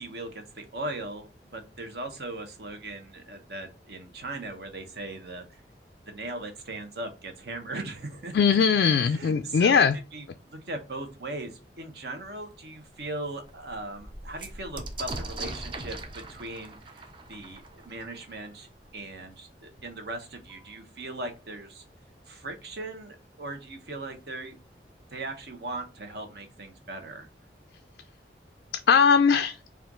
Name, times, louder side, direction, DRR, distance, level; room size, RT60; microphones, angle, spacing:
voice 1, 0.0-5.6 6.1-8.4 9.0-9.8 10.1-21.8 22.3-24.5 25.1-27.3, right 2 dB, 65° right, 5 dB, 1.0 m, -39 dB
voice 2, 8.3-10.0 28.9-29.6, left 6 dB, 70° left, 8 dB, 0.3 m, -20 dB
sound 1, 12.4-12.5 12.9-13.0 13.3-18.8 19.8-19.9 20.1-20.8, right 2 dB, 25° right, 0.5 m, -40 dB
4.4 x 2.4 x 3.6 m, 0.32 s
head